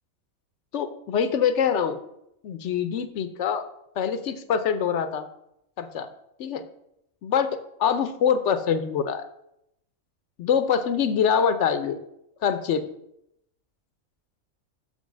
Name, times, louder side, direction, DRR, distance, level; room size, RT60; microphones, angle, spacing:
voice 1, 0.7-2.0 2.4-3.6 4.0-5.3 5.8-6.1 6.4-6.6 7.2-7.5 7.8-9.2 10.4-12.0 12.4-12.8, left 7 dB, 60° left, 11 dB, 0.9 m, -24 dB
6.6 x 5.4 x 6.3 m, 0.79 s
omnidirectional pair, 1.5 m